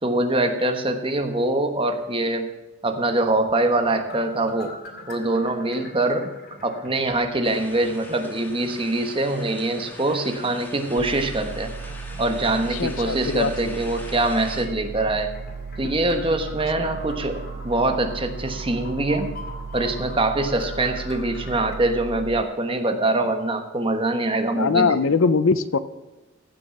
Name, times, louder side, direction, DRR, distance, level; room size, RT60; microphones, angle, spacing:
voice 1, 0.0-2.5 2.8-4.7 5.1-6.3 6.6-11.7 12.2-15.3 15.8-19.3 19.7-25.0, right 2 dB, 25° right, 6 dB, 1.2 m, -24 dB
sound 1, 3.5-21.8, left 2 dB, 50° left, 2.7 m, -44 dB
sound 2, 7.4-14.7, left 1 dB, 10° left, 1.6 m, -42 dB
sound 3, 11.0-22.4, right 5 dB, 60° right, 0.6 m, -36 dB
voice 2, 12.7-13.7 16.8-16.9 24.5-25.8, left 4 dB, 70° left, 14 dB, 0.6 m, -22 dB
16.0 x 6.2 x 5.6 m, 1.1 s
head